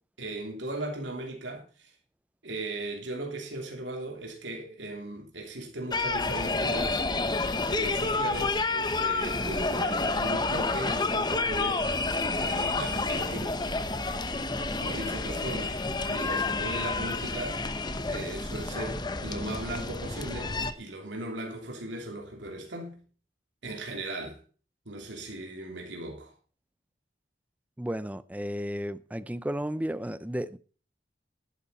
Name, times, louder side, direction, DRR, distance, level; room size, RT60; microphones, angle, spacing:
voice 1, 0.2-1.9 2.4-7.4 7.7-11.8 12.4-13.6 14.1-14.2 14.8-15.8 16.1-17.6 18.1-23.0 23.6-24.4 24.8-26.3, right 1 dB, 85° right, 3.0 m, -37 dB
sound 1, 5.9-20.7, left 3 dB, 25° left, 0.9 m, -29 dB
voice 2, 27.8-30.6, equal, 10° right, 0.5 m, -33 dB
11.5 x 11.0 x 4.2 m
head